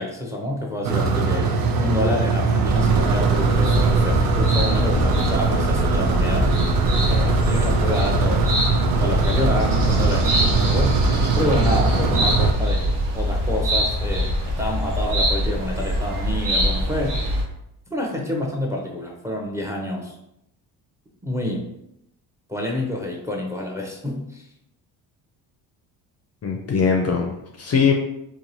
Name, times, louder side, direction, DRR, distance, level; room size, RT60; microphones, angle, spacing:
voice 1, 0.0-8.5 8.9-17.2 17.9-20.1 21.2-21.7 22.5-24.4, left 1 dB, 5° right, -1 dB, 0.6 m, -28 dB
sound 1, 0.8-12.5, right 4 dB, 55° right, 0.5 m, -21 dB
sound 2, 2.6-17.4, equal, 75° right, 0.9 m, -23 dB
voice 2, 26.4-27.9, left 6 dB, 40° left, 2 dB, 0.5 m, -21 dB
2.9 x 2.4 x 2.6 m, 0.81 s
supercardioid pair, 70°, 42 cm